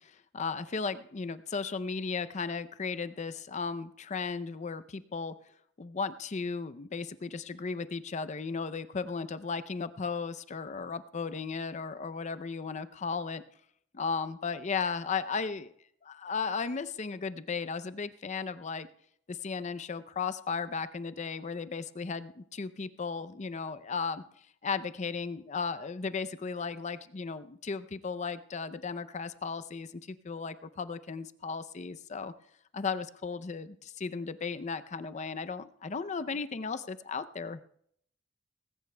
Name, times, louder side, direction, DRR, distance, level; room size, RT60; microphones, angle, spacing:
voice 1, 0.0-5.3 5.8-13.4 13.9-15.7 16.0-18.9 19.3-24.2 24.6-32.3 32.7-37.8, left 5 dB, 40° left, 13 dB, 0.5 m, -35 dB
19.5 x 16.0 x 2.2 m, 0.67 s
head